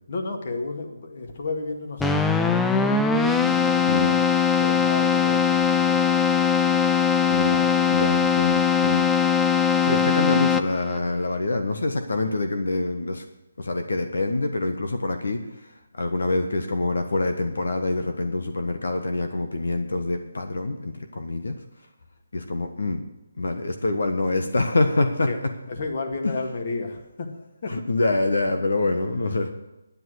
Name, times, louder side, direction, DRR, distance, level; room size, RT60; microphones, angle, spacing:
voice 1, 0.1-4.3 4.6-6.9 7.5-8.0 25.3-25.4 25.7-27.8, left 3 dB, 45° left, 4 dB, 2.0 m, -33 dB
Keyboard (musical), 2.0-11.0, left 6 dB, 5° left, 0.4 m, -21 dB
voice 2, 7.3-9.1 9.8-13.3 13.6-21.6 22.3-23.0 23.4-25.5 26.2-26.3 27.7-29.5, left 2 dB, 75° left, 6 dB, 1.4 m, -26 dB
11.0 x 9.7 x 6.4 m, 0.97 s
hypercardioid pair, 165°, 0 cm